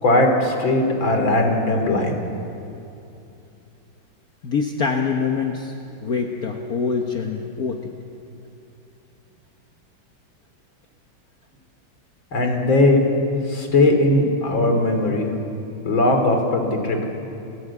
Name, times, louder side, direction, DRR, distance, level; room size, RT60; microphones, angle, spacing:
voice 1, 0.0-2.1 12.3-13.0 13.5-15.3 15.9-17.1, left 2 dB, 75° left, 4 dB, 3.7 m, -19 dB
voice 2, 4.4-5.7 6.0-7.8, left 5 dB, 55° left, 2 dB, 1.6 m, -24 dB
29.5 x 15.0 x 8.5 m, 2.7 s
omnidirectional pair, 2.1 m